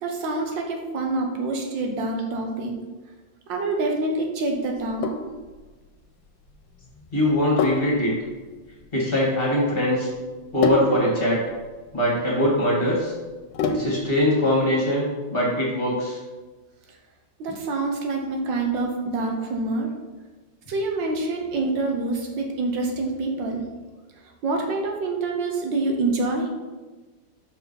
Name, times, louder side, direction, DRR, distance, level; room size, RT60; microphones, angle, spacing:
voice 1, 0.0-2.7 3.5-5.1 16.9-17.0 17.4-19.9 20.7-23.6 24.2-26.5, right 3 dB, 75° right, 2 dB, 1.6 m, -26 dB
Sink (filling or washing), 4.7-14.2, left 3 dB, 80° left, 1.4 m, -31 dB
voice 2, 7.1-8.1 8.9-10.1 10.5-11.4 11.9-13.1 13.7-16.2, left 1 dB, 30° left, -4 dB, 1.9 m, -22 dB
5.6 x 4.6 x 5.5 m, 1.3 s
omnidirectional pair, 2.1 m